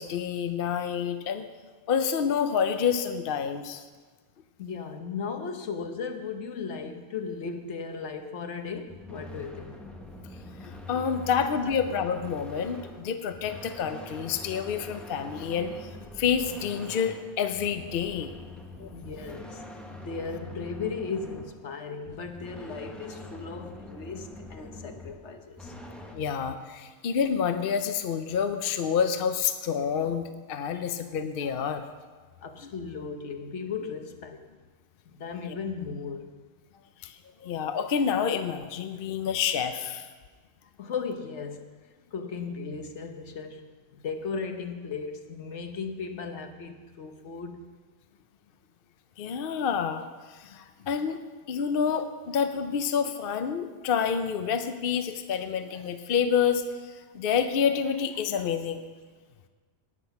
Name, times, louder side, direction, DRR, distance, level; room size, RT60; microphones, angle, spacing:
voice 1, 0.0-1.5 1.9-3.8 10.6-15.9 16.2-18.3 18.8-18.9 26.1-31.8 35.5-35.6 37.0-40.1 49.2-50.0 50.3-51.2 51.5-58.8, left 7 dB, 55° left, 8 dB, 0.8 m, -28 dB
voice 2, 4.6-9.8 18.9-19.6 19.9-25.8 30.7-30.9 32.2-34.5 35.1-36.2 40.8-41.7 42.1-47.6, left 5 dB, 75° left, 6 dB, 1.3 m, -36 dB
sound 1, 8.9-26.2, left 1 dB, ahead, 1.0 m, -44 dB
18.0 x 6.1 x 5.8 m, 1.4 s
omnidirectional pair, 1.2 m